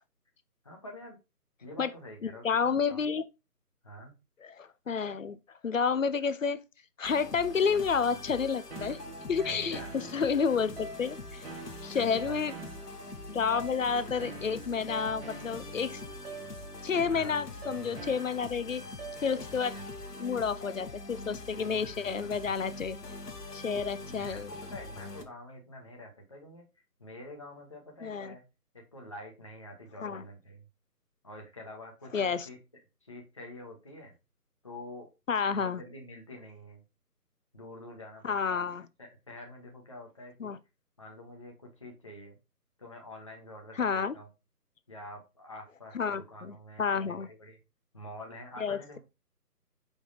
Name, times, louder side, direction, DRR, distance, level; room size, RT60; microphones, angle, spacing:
voice 1, 0.6-1.2 1.6-3.0 3.8-4.1 9.3-9.9 11.9-12.4 14.0-14.1 17.1-17.4 19.7-19.8 22.4-22.5 24.0-26.6 27.0-28.4 28.7-30.7 31.2-32.6 33.0-34.1 34.6-35.1 35.5-36.8 37.5-38.6 39.0-40.5 41.0-42.4 42.8-44.3 44.9-47.6 47.9-49.0, left 1 dB, 20° left, 0.9 m, -47 dB
voice 2, 2.2-3.2 4.4-5.4 5.6-6.6 7.0-9.0 9.3-11.4 11.8-12.5 13.3-16.0 16.8-18.8 19.2-19.8 20.2-23.0 23.5-24.5 28.0-28.4 30.0-30.2 32.1-32.5 35.3-35.8 38.2-38.9 40.4-40.6 43.8-44.1 45.9-47.3 48.6-49.0, left 6 dB, 55° left, 0.6 m, -30 dB
sound 1, 7.0-25.2, left 2 dB, 75° left, 1.3 m, -43 dB
sound 2, 8.7-19.7, right 3 dB, 40° right, 1.2 m, -46 dB
5.2 x 4.7 x 3.9 m
figure-of-eight pair, 160°, 48 cm